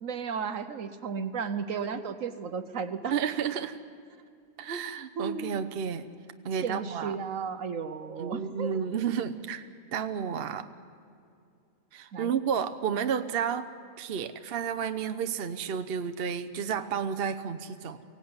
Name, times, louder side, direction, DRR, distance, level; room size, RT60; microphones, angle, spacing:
voice 1, 0.0-3.1 5.2-5.7 6.6-8.9 12.1-12.3, right 6 dB, 70° right, 10 dB, 1.2 m, -34 dB
voice 2, 3.1-3.8 4.6-6.1 6.4-7.1 8.2-10.7 11.9-13.7 14.0-18.0, right 7 dB, 50° right, 9 dB, 0.9 m, -31 dB
23.0 x 17.0 x 9.6 m, 2.4 s
omnidirectional pair, 1.5 m